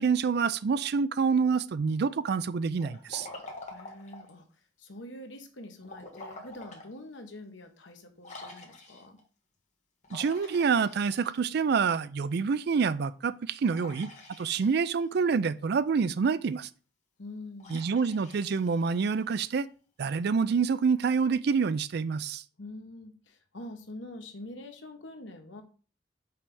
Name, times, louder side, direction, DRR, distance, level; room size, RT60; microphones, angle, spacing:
voice 1, 0.0-3.3 10.1-14.1 14.4-16.7 17.7-19.7 20.0-22.4, right 5 dB, 60° right, 0.4 m, -27 dB
Liquid, 2.8-4.4 5.8-6.9 7.4-7.5 8.2-9.2 10.0-11.7 13.7-15.0 17.6-19.2, left 2 dB, 40° left, 1.6 m, -47 dB
voice 2, 3.7-4.5 4.8-9.2 17.2-17.8 22.6-25.6, left 1 dB, 90° left, 1.2 m, -45 dB
5.6 x 3.4 x 5.4 m
head